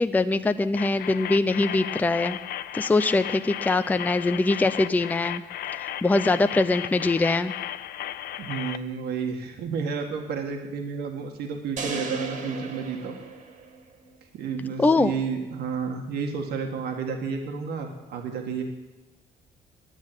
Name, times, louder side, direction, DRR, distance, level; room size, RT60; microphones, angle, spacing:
voice 1, 0.0-2.4 2.7-5.4 5.7-7.5 14.8-15.1, left 2 dB, 10° left, 11 dB, 0.5 m, -23 dB
sound 1, 0.8-8.8, left 12 dB, 65° left, 0.6 m, -35 dB
voice 2, 8.4-13.2 14.3-18.6, right 5 dB, 70° right, 3 dB, 1.8 m, -31 dB
sound 2, 11.8-14.1, right 3 dB, 50° right, 2.0 m, -35 dB
11.0 x 9.4 x 9.0 m, 1.1 s
cardioid pair, 110°, 17 cm